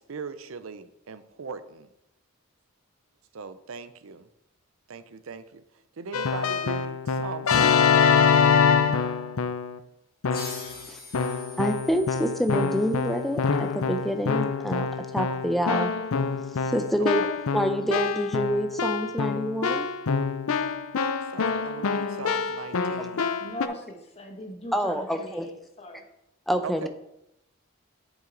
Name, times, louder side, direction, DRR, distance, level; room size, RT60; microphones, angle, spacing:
voice 1, 0.0-1.9 3.3-4.3 4.9-5.6 6.0-8.3 17.1-17.2 21.3-23.3 26.6-26.9, right 5 dB, 75° right, 0.6 m, -39 dB
Keyboard (musical), 6.1-9.8 10.2-10.7 11.1-23.7, left 6 dB, 85° left, 0.5 m, -25 dB
sound 1, 10.3-13.5, left 3 dB, 45° left, 2.3 m, -44 dB
voice 2, 11.6-14.9 15.1-15.9 16.5-17.3 17.5-19.9 23.0-23.1 24.7-25.5 26.5-26.9, equal, ahead, 0.5 m, -27 dB
voice 3, 23.4-25.5 25.8-26.1, left 1 dB, 30° left, 1.1 m, -40 dB
7.4 x 6.2 x 3.9 m
head